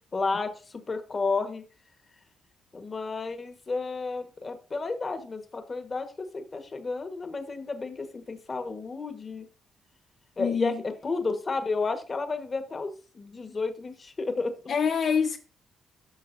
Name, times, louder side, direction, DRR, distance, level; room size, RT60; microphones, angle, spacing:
voice 1, 0.1-1.6 2.7-9.5 10.4-14.6, left 3 dB, 30° left, 1.5 m, -32 dB
voice 2, 10.4-10.8 14.7-15.4, left 6 dB, 60° left, 0.9 m, -26 dB
13.5 x 6.2 x 2.7 m
cardioid pair, 90°, 0 cm